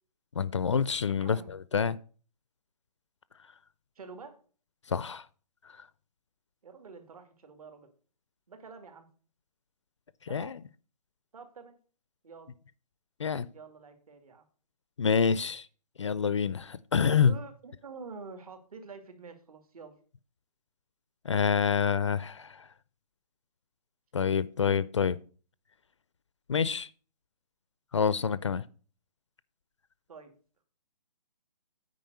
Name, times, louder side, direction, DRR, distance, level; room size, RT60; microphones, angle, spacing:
voice 1, 0.3-2.0 4.9-5.3 10.3-10.6 13.2-13.5 15.0-15.7 16.0-17.3 21.2-22.7 24.1-25.2 26.5-26.9 27.9-28.6, left 6 dB, 45° left, 0.4 m, -27 dB
voice 2, 1.2-1.5 4.0-4.4 6.6-7.9 8.5-9.1 10.3-10.6 11.3-11.8 12.2-12.5 13.5-14.4 17.2-19.9 21.2-21.4 30.1-30.3, right 4 dB, 60° right, 2.3 m, -47 dB
9.3 x 5.1 x 6.6 m
hypercardioid pair, 175°, 21 cm